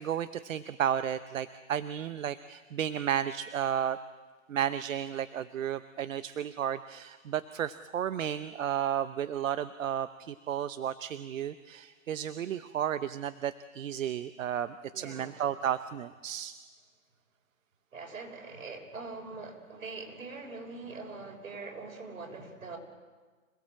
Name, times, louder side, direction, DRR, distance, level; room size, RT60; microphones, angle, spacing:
voice 1, 0.0-4.0 4.5-16.5, right 10 dB, 70° right, 12 dB, 0.9 m, -33 dB
voice 2, 14.9-15.3 17.9-22.8, right 3 dB, 85° right, 2 dB, 6.4 m, -43 dB
27.0 x 18.0 x 7.7 m, 1.4 s
hypercardioid pair, 140°, 41 cm